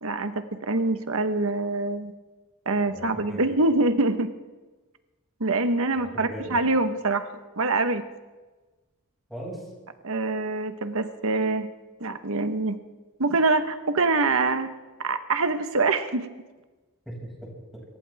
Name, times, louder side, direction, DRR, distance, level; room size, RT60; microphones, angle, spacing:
voice 1, 0.0-2.1 2.7-4.3 5.4-7.3 7.6-8.0 10.0-11.7 12.0-12.8 13.2-14.7 15.0-16.3, right 3 dB, 65° right, 9 dB, 1.3 m, -25 dB
voice 2, 2.9-3.5 5.9-6.6 9.3-9.7 17.1-17.8, right 1 dB, ahead, -4 dB, 6.4 m, -39 dB
26.5 x 15.0 x 3.6 m, 1.2 s
head